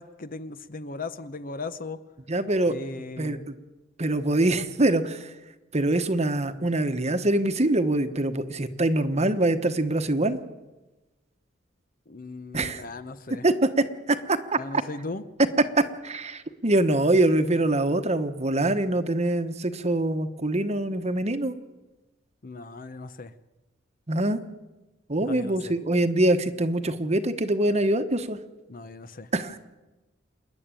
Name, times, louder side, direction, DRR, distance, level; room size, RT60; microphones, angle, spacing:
voice 1, 0.0-2.0 2.7-3.5 12.1-13.4 14.5-15.2 22.4-23.3 25.2-25.7 28.7-29.3, left 3 dB, 45° left, 12 dB, 0.9 m, -37 dB
voice 2, 2.3-2.7 3.2-3.5 4.0-5.3 5.7-10.4 12.5-12.8 13.4-14.4 16.0-21.5 24.1-24.4 25.1-28.4 29.3-29.6, right 1 dB, 35° right, 9 dB, 1.1 m, -24 dB
28.0 x 10.5 x 9.0 m, 1.1 s
head